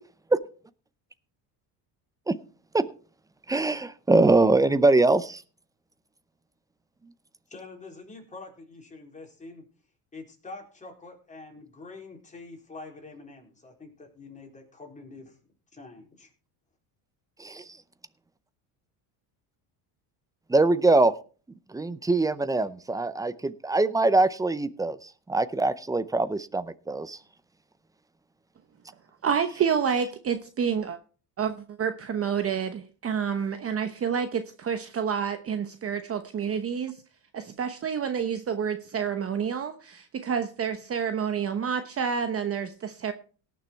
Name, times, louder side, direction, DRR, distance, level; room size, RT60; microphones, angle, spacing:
voice 1, 3.5-5.4 17.4-17.6 20.5-21.1 21.7-27.2, right 2 dB, 10° right, 15 dB, 0.6 m, -23 dB
voice 2, 7.5-9.6 10.1-15.4 15.7-16.3, left 3 dB, 15° left, 0 dB, 4.4 m, -45 dB
voice 3, 29.2-31.0 31.4-37.0 37.3-43.1, right 7 dB, 30° right, 9 dB, 1.0 m, -29 dB
17.5 x 6.9 x 4.5 m, 0.38 s
cardioid pair, 130°, 45 cm